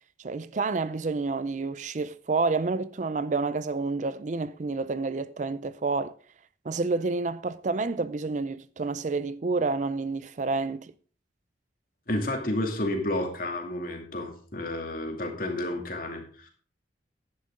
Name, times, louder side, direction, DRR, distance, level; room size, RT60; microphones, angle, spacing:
voice 1, 0.2-6.1 6.7-10.9, right 3 dB, 40° right, 0.4 m, -29 dB
voice 2, 12.1-16.5, left 1 dB, 50° left, 2.5 m, -31 dB
11.0 x 10.5 x 3.8 m
head